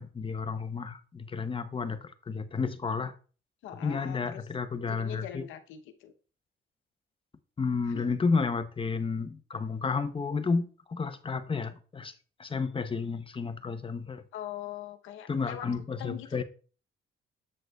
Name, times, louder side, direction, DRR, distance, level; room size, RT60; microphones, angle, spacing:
voice 1, 0.0-3.1 3.8-5.5 7.6-12.1 12.4-14.2 15.3-16.4, left 4 dB, 25° left, 0.7 m, -31 dB
voice 2, 3.6-4.4 4.9-6.1 7.9-8.1 14.3-15.7 16.0-16.4, left 11 dB, 90° left, 0.9 m, -42 dB
7.7 x 7.7 x 2.3 m
cardioid pair, 90°, 20 cm